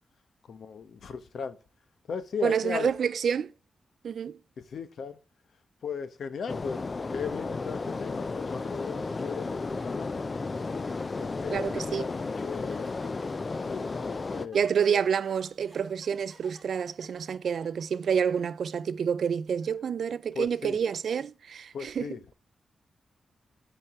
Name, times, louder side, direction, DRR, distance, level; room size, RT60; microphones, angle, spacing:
voice 1, 0.5-1.6 2.1-2.9 4.6-5.2 5.8-10.3 11.2-13.2 13.7-14.7 20.3-20.8 21.7-22.3, left 6 dB, 65° left, 0.9 m, -37 dB
voice 2, 2.4-3.5 4.0-4.4 11.5-12.1 14.5-22.1, right 7 dB, 65° right, 0.4 m, -28 dB
sound 1, 6.5-14.5, left 3 dB, 30° left, 0.4 m, -33 dB
sound 2, 8.3-8.5 9.0-18.3, right 2 dB, 20° right, 2.3 m, -56 dB
8.8 x 4.6 x 3.5 m
wide cardioid pair, 135°, 0 cm